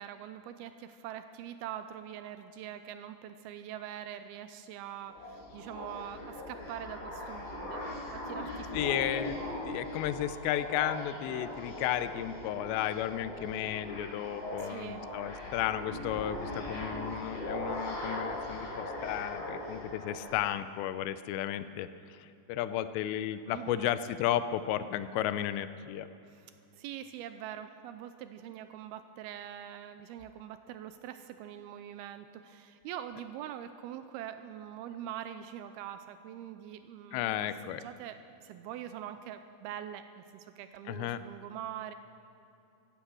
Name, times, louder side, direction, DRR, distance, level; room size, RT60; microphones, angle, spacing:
voice 1, 0.0-7.8 8.1-9.1 14.6-15.1 23.5-24.0 26.3-26.5 26.7-37.4 37.6-38.2 38.4-41.9, right 10 dB, 85° right, 10 dB, 2.3 m, -43 dB
sound 1, 5.0-20.3, left 1 dB, 65° left, 6.6 m, -40 dB
voice 2, 8.7-9.4 9.6-26.1 37.1-37.8 40.9-41.2, left 12 dB, 85° left, 13 dB, 2.9 m, -33 dB
15.5 x 14.5 x 6.2 m, 2.7 s
omnidirectional pair, 5.0 m